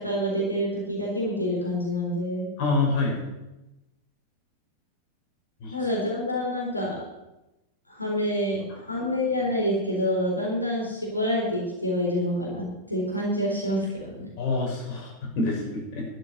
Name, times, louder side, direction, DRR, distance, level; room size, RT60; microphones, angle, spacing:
voice 1, 0.0-2.5 5.7-7.0 7.9-14.3, equal, 85° left, -3 dB, 4.1 m, -27 dB
voice 2, 2.6-3.2 5.6-5.7 14.4-16.1, left 3 dB, 45° left, -1 dB, 5.9 m, -26 dB
12.5 x 8.2 x 8.2 m, 0.96 s
figure-of-eight pair, 90°, 0 cm